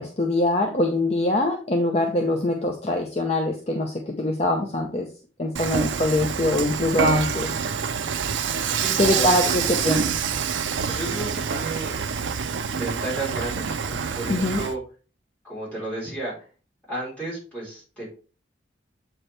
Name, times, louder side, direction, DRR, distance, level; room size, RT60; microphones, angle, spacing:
voice 1, 0.0-5.1 5.4-7.5 9.0-10.1 14.3-14.6, left 1 dB, 35° left, 3 dB, 0.6 m, -23 dB
Dishes pots and pans / Frying (food), 5.6-14.7, right 6 dB, 80° right, 0.5 m, -26 dB
voice 2, 8.7-9.5 10.9-12.0 12.6-14.8 15.4-16.3 16.9-18.1, right 2 dB, 5° left, -7 dB, 3.7 m, -33 dB
7.7 x 4.5 x 3.3 m, 0.36 s
head